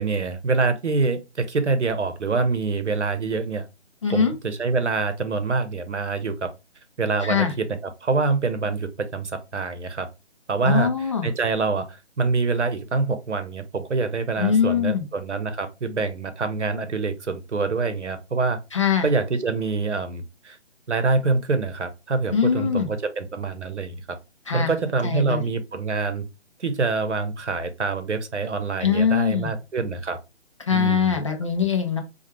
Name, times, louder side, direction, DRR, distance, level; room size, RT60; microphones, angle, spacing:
voice 1, 0.0-3.7 4.1-6.5 7.0-10.1 10.5-10.9 11.2-18.6 19.0-20.6 20.9-24.2 24.5-26.3 26.6-30.2 30.7-31.1, right 4 dB, 85° right, 0.9 m, -25 dB
voice 2, 4.0-4.3 7.2-7.5 10.6-11.3 14.4-15.1 18.7-19.1 22.3-22.9 24.5-24.7 25.0-25.5 28.8-29.5 30.7-32.0, left 7 dB, 30° left, 0.5 m, -22 dB
4.4 x 2.3 x 3.1 m
figure-of-eight pair, 150°, 34 cm